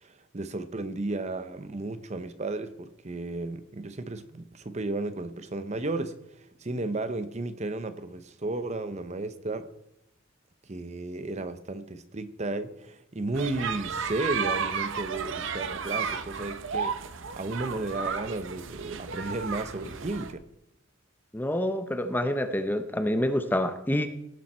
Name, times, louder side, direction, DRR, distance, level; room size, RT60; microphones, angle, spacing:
voice 1, 0.0-9.7 10.7-20.4, right 2 dB, 35° right, 0.7 m, -34 dB
sound 1, 13.3-20.3, right 6 dB, 65° right, 0.7 m, -33 dB
voice 2, 21.3-24.1, left 1 dB, 10° left, 0.6 m, -27 dB
17.5 x 7.1 x 4.3 m
head